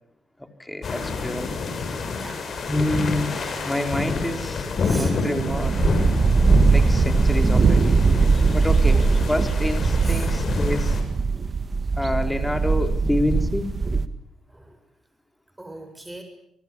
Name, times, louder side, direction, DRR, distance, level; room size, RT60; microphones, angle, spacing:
voice 1, 0.4-1.5 2.7-5.7 6.7-8.0 8.5-9.0 9.3-11.0 12.0-13.7, left 1 dB, 5° left, 7 dB, 3.6 m, -27 dB
sound 1, 0.8-11.0, left 4 dB, 50° left, 6.8 m, -28 dB
voice 2, 4.8-5.3 6.0-6.1 8.3-9.1 10.0-10.3 12.2-12.3 14.5-14.8 15.6-16.2, right 1 dB, 10° right, 6 dB, 6.8 m, -41 dB
sound 2, 5.3-6.1 7.6-8.4 10.1-10.2, right 9 dB, 75° right, 1.6 m, -29 dB
sound 3, 5.5-14.1, right 4 dB, 35° right, 1.9 m, -20 dB
28.5 x 19.5 x 8.5 m, 0.74 s
cardioid pair, 90°, 0 cm